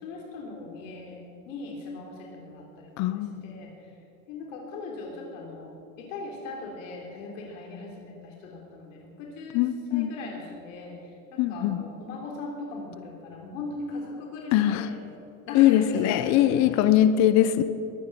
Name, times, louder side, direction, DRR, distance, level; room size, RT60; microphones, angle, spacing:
voice 1, 0.0-3.7 4.3-9.6 9.9-10.9 11.3-15.0 15.5-16.9, left 3 dB, 70° left, -1 dB, 3.6 m, -39 dB
voice 2, 3.0-3.4 9.5-10.1 11.4-11.8 14.5-14.9 15.5-17.6, left 12 dB, 40° left, 11 dB, 0.9 m, -21 dB
22.0 x 9.4 x 6.2 m, 2.9 s
supercardioid pair, 130°, 40 cm